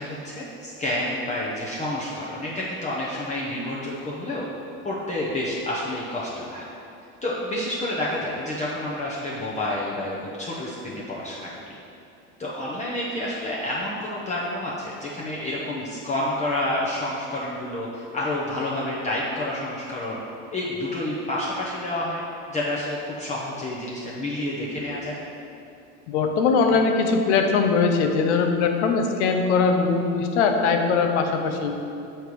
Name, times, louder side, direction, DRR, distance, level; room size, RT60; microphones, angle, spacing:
voice 1, 0.0-4.4 4.8-6.6 7.2-11.5 12.4-20.2 20.5-22.2 22.5-25.2, left 1 dB, 20° left, -5 dB, 0.9 m, -29 dB
voice 2, 26.1-31.8, left 5 dB, 85° left, 4 dB, 0.9 m, -21 dB
7.0 x 4.4 x 4.8 m, 2.7 s
supercardioid pair, 120°, 33 cm